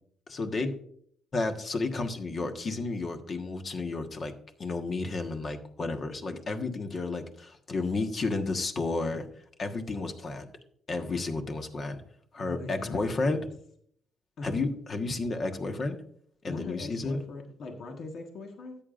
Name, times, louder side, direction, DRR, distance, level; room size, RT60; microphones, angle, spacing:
voice 1, 0.3-0.7 1.3-4.3 4.6-9.3 9.6-10.5 10.9-12.0 12.3-13.4 14.4-16.0 16.4-17.2, left 3 dB, 45° left, 5 dB, 1.4 m, -32 dB
voice 2, 12.4-13.5 14.4-14.6 16.5-18.8, left 3 dB, 65° left, 3 dB, 1.4 m, -41 dB
13.5 x 8.9 x 2.5 m, 0.63 s
cardioid pair, 100°, 0 cm